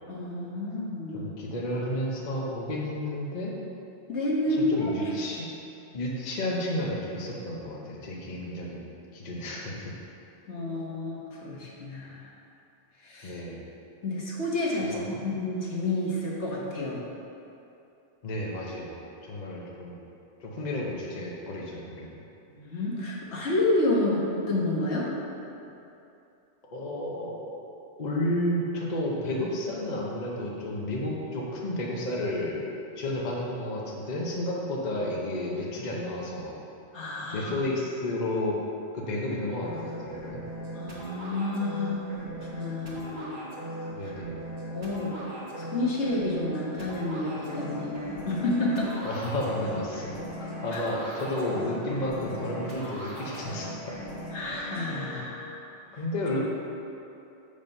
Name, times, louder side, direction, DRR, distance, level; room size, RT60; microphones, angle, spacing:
voice 1, 0.1-1.3 4.1-5.1 10.5-12.3 13.0-13.4 14.0-14.9 15.2-17.0 22.5-25.1 36.9-37.5 40.7-43.4 44.0-44.1 44.7-45.2 45.6-48.9 50.7-50.8 54.3-55.6, left 2 dB, 75° left, -4 dB, 1.6 m, -30 dB
voice 2, 1.1-3.5 4.7-5.5 5.9-9.9 13.2-13.7 14.9-15.0 18.2-20.0 20.4-22.1 26.7-27.6 28.0-36.6 37.3-38.6 38.9-40.4 43.9-44.4 49.0-50.1 50.4-53.7 55.9-56.4, left 1 dB, 40° left, -3 dB, 1.0 m, -32 dB
sound 1, 39.6-55.2, equal, 45° right, 1.6 m, -38 dB
7.3 x 5.1 x 5.4 m, 2.8 s
omnidirectional pair, 1.2 m